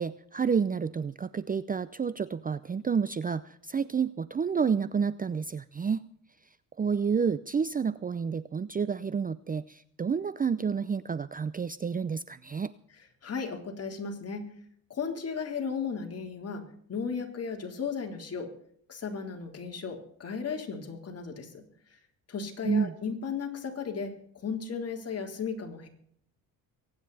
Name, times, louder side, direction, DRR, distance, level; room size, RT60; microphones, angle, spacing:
voice 1, 0.0-6.1 6.8-12.7 22.7-22.9, right 6 dB, 25° right, 16 dB, 0.6 m, -29 dB
voice 2, 13.2-14.5 14.9-16.6 16.9-18.5 18.9-21.6 22.3-25.9, left 5 dB, 40° left, 2 dB, 3.8 m, -35 dB
23.5 x 9.8 x 4.2 m, 0.63 s
cardioid pair, 90°, 37 cm